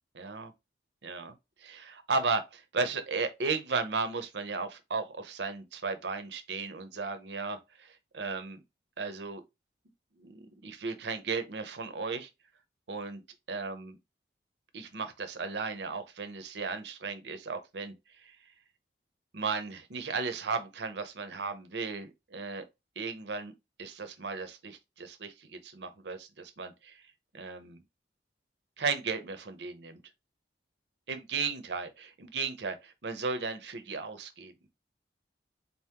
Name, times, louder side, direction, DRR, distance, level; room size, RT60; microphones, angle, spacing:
voice 1, 0.1-0.5 1.0-8.6 9.0-9.4 10.2-12.3 12.9-13.2 13.5-14.0 14.7-18.4 19.3-22.6 23.0-23.5 23.8-27.0 27.3-27.8 28.8-30.0 31.1-34.5, right 4 dB, 75° right, 0.7 m, -35 dB
4.0 x 2.9 x 3.5 m
head